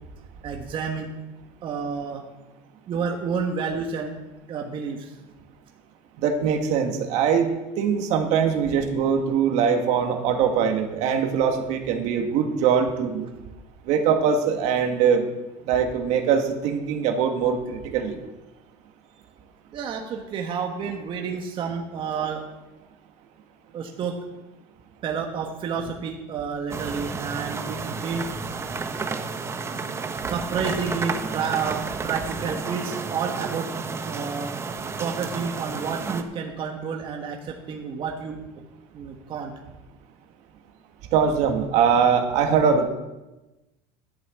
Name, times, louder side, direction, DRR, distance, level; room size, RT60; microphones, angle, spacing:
voice 1, 0.4-1.1 1.6-2.2 2.9-4.1 4.5-5.2 19.7-22.4 23.7-24.1 25.0-28.3 30.2-31.8 32.0-33.7 34.0-34.5 35.0-38.4 38.9-39.5, right 6 dB, 40° right, 2 dB, 1.4 m, -30 dB
voice 2, 6.2-7.5 7.8-13.3 13.9-15.3 15.6-18.2 41.1-42.9, right 7 dB, 65° right, 5 dB, 1.7 m, -22 dB
sound 1, 26.7-36.2, right 4 dB, 20° right, 1.0 m, -31 dB
11.5 x 6.2 x 8.2 m, 1.0 s
supercardioid pair, 125°, 13 cm